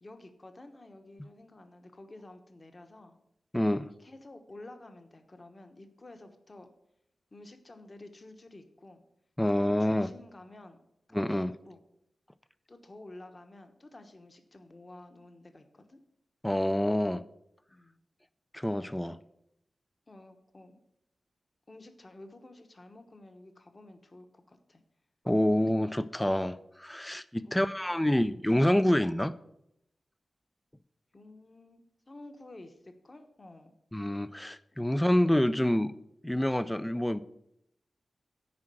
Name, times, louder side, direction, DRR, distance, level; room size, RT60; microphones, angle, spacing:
voice 1, 0.0-3.2 4.0-6.7 7.3-9.0 9.5-10.8 11.3-11.8 12.7-16.0 17.7-18.0 20.1-20.8 21.7-24.8 27.4-28.2 31.1-33.7, left 2 dB, 30° left, 6 dB, 1.1 m, -51 dB
voice 2, 3.5-3.9 9.4-10.1 11.1-11.5 16.4-17.2 18.5-19.2 25.3-29.3 33.9-35.9 36.2-37.2, left 1 dB, 5° left, 14 dB, 0.4 m, -27 dB
9.6 x 4.9 x 7.6 m, 0.79 s
wide cardioid pair, 140°, 0 cm